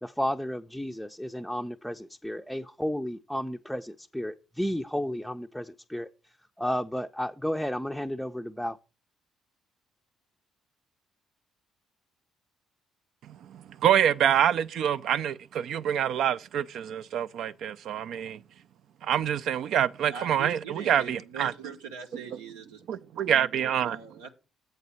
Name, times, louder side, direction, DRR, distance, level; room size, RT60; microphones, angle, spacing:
voice 1, 0.0-6.1 6.6-8.8, equal, 5° left, 0.5 m, -32 dB
voice 2, 13.5-18.4 19.0-21.5 22.9-24.0, right 9 dB, 65° right, 0.4 m, -26 dB
voice 3, 20.1-23.2 23.8-24.3, right 6 dB, 85° right, 0.9 m, -42 dB
7.8 x 4.0 x 6.9 m
hypercardioid pair, 50°, 0 cm